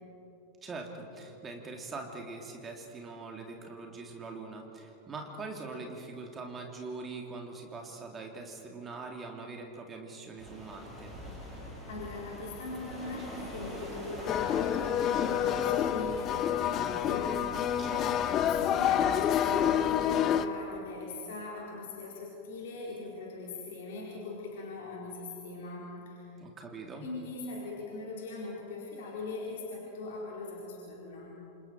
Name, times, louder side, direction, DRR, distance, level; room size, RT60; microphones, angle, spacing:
voice 1, 0.6-11.1 17.8-18.1 26.4-27.1, right 3 dB, 20° right, 2 dB, 2.9 m, -42 dB
sound 1, 10.4-20.0, equal, ahead, 7.5 m, -44 dB
voice 2, 11.4-17.7 18.5-26.3 27.0-31.3, left 3 dB, 55° left, -4 dB, 4.3 m, -41 dB
sound 2, 14.3-20.5, left 10 dB, 30° left, 0.8 m, -28 dB
28.0 x 28.0 x 4.6 m, 3.0 s
figure-of-eight pair, 90°, 0 cm